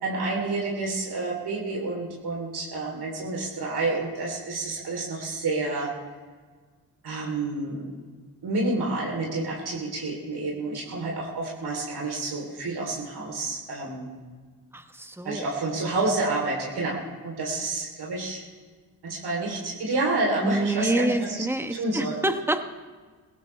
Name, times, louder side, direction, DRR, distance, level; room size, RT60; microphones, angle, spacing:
voice 1, 0.0-5.9 7.0-7.8 8.4-14.1 15.2-18.4 19.0-21.4 21.7-22.2, right 2 dB, 65° right, -2 dB, 3.5 m, -29 dB
voice 2, 14.7-15.5 20.4-22.6, right 1 dB, 5° right, 8 dB, 1.2 m, -27 dB
18.0 x 17.5 x 3.4 m, 1.5 s
supercardioid pair, 55°, 41 cm